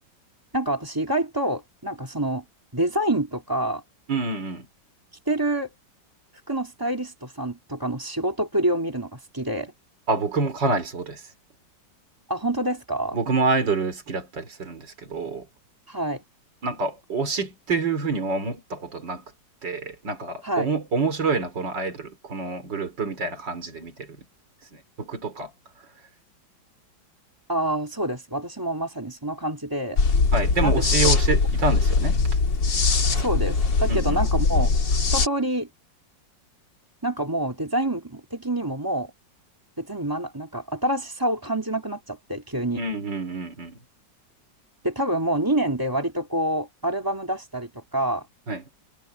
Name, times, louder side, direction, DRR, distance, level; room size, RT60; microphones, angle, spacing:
voice 1, 0.5-2.4 2.7-3.8 5.3-5.7 6.5-9.7 12.3-13.2 15.9-16.2 20.4-20.7 27.5-30.0 30.6-30.8 33.1-34.7 35.1-35.7 37.0-39.1 39.8-42.8 44.8-48.2, right 1 dB, 10° right, 2.4 m, -27 dB
voice 2, 4.1-4.7 10.1-11.2 13.1-15.5 16.6-19.2 19.6-24.1 24.7-25.5 30.3-32.2 33.9-34.2 42.7-43.8 48.5-48.6, right 3 dB, 70° right, 4.6 m, -27 dB
sound 1, 30.0-35.3, left 4 dB, 70° left, 3.4 m, -21 dB
omnidirectional pair, 2.0 m